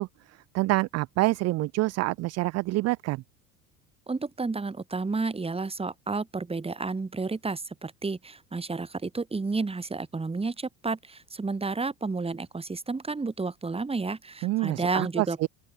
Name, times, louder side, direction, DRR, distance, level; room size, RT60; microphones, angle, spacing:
voice 1, 0.0-3.2 14.4-15.5, right 19 dB, 40° right, 0.4 m, -27 dB
voice 2, 4.1-15.5, right 3 dB, 15° right, 1.5 m, -31 dB
open air
hypercardioid pair, 70°, 44 cm